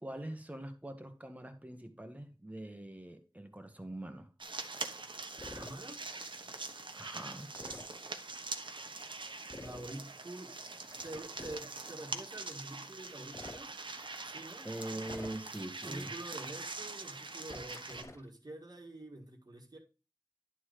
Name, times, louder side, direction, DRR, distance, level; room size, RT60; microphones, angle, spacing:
voice 1, 0.0-4.3 6.9-7.5 14.6-16.1, right 1 dB, 15° right, 1.6 m, -43 dB
sound 1, 4.4-18.0, right 3 dB, 80° right, 1.2 m, -44 dB
sound 2, 5.4-5.7 7.5-7.9 9.5-9.9 10.9-11.7 13.2-13.6 15.0-15.6 17.4-18.3, left 2 dB, 35° left, 0.8 m, -48 dB
voice 2, 5.5-6.0 9.6-10.6 11.0-13.8 14.2-14.7 15.8-19.8, right 1 dB, 55° right, 1.8 m, -47 dB
11.0 x 4.1 x 4.9 m
wide cardioid pair, 60°, 8 cm